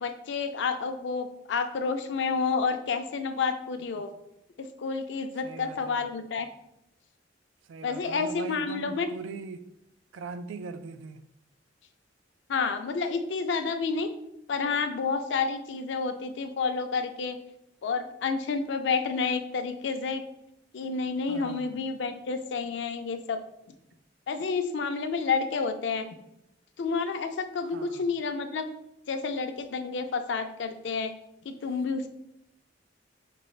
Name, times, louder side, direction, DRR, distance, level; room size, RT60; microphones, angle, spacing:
voice 1, 0.0-4.1 4.6-6.5 7.8-9.1 12.5-14.1 14.5-17.4 17.8-20.2 20.7-23.4 24.3-26.0 26.8-28.7 29.1-31.1 31.5-32.1, left 5 dB, 65° left, 0.4 m, -30 dB
voice 2, 5.4-6.1 7.7-9.6 10.1-11.3 21.3-21.8 27.6-28.0, right 4 dB, 80° right, 0.3 m, -41 dB
5.2 x 3.2 x 2.3 m
head